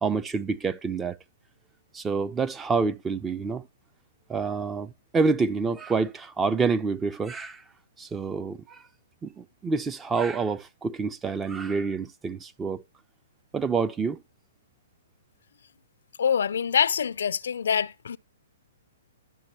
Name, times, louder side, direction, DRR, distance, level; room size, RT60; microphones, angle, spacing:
voice 1, 0.0-1.2 1.9-3.6 4.3-7.6 8.0-8.8 9.2-12.8 13.5-14.2, right 4 dB, 10° right, 0.5 m, -27 dB
voice 2, 16.2-18.2, left 7 dB, 75° left, 0.5 m, -25 dB
11.0 x 6.5 x 4.4 m
hypercardioid pair, 145°, 0 cm